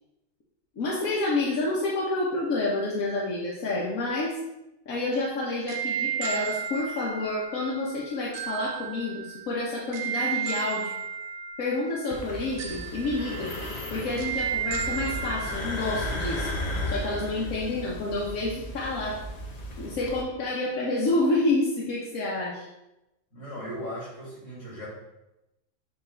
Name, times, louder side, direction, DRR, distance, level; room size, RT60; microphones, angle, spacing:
voice 1, 0.8-4.4 4.9-10.9 11.6-13.5 13.9-16.5 16.8-19.2 19.8-22.7, left 2 dB, 90° left, -5 dB, 1.4 m, -29 dB
sound 1, 5.1-15.5, right 7 dB, 70° right, 1.1 m, -34 dB
sound 2, 12.1-20.2, left 1 dB, 40° left, 0.7 m, -35 dB
voice 2, 23.3-24.9, equal, 65° left, -6 dB, 2.8 m, -37 dB
7.2 x 3.0 x 4.4 m, 0.94 s
omnidirectional pair, 1.4 m